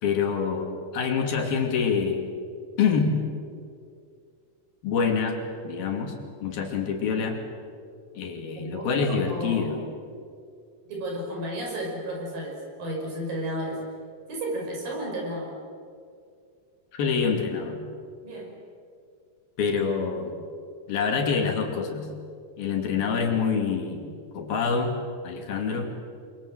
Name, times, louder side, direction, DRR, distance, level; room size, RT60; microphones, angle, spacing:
voice 1, 0.0-2.3 2.8-3.1 4.8-5.4 5.6-6.2 6.4-7.4 8.2-9.8 16.9-17.8 19.6-20.3 20.9-22.1 22.6-24.0 24.3-25.0 25.2-25.9, left 5 dB, 70° left, 3 dB, 4.3 m, -26 dB
voice 2, 8.6-9.7 10.9-13.8 14.3-15.5 18.2-18.5, right 1 dB, 60° right, 0 dB, 7.3 m, -33 dB
30.0 x 22.5 x 7.7 m, 2.3 s
omnidirectional pair, 4.5 m